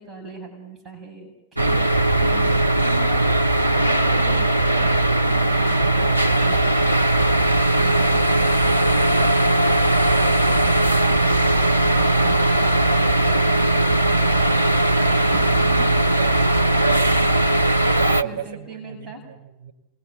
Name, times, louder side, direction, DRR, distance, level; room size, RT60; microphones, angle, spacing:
voice 1, 0.0-16.3 18.2-19.2, right 3 dB, 15° right, 0 dB, 7.9 m, -40 dB
sound 1, 1.6-18.2, right 1 dB, 85° right, 0.9 m, -18 dB
voice 2, 16.2-17.2 17.6-19.7, right 8 dB, 50° right, 1 dB, 5.2 m, -36 dB
28.0 x 23.0 x 8.6 m, 0.94 s
figure-of-eight pair, 90°, 0 cm